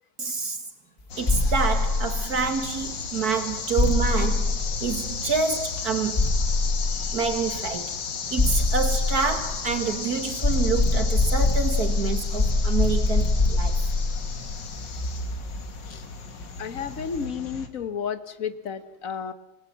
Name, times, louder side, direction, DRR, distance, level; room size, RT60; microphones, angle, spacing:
voice 1, 0.2-0.6 1.2-6.2 7.1-8.0 8.3-13.8, right 5 dB, 60° right, 2.0 m, -27 dB
sound 1, 1.1-17.7, left 5 dB, 90° left, 2.4 m, -34 dB
sound 2, 1.3-2.8 3.8-5.4 6.2-7.5 8.4-10.0 10.4-15.7, left 3 dB, 25° left, 1.2 m, -24 dB
voice 2, 16.6-19.3, left 7 dB, 50° left, 1.6 m, -32 dB
27.0 x 19.0 x 7.4 m
omnidirectional pair, 1.9 m